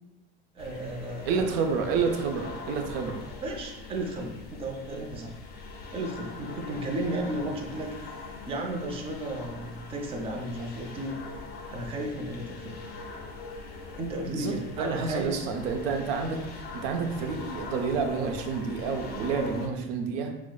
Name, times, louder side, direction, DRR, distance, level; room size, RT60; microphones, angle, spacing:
voice 1, 0.5-1.5 3.4-5.4 5.9-11.2 11.7-12.8 13.9-15.3, right 1 dB, 20° right, 0 dB, 0.5 m, -34 dB
sound 1, 0.6-19.7, left 3 dB, 35° left, 0.6 m, -42 dB
voice 2, 1.2-3.2 14.3-20.3, right 5 dB, 70° right, 4 dB, 0.5 m, -29 dB
6.1 x 2.1 x 2.2 m, 1.0 s
supercardioid pair, 115°, 29 cm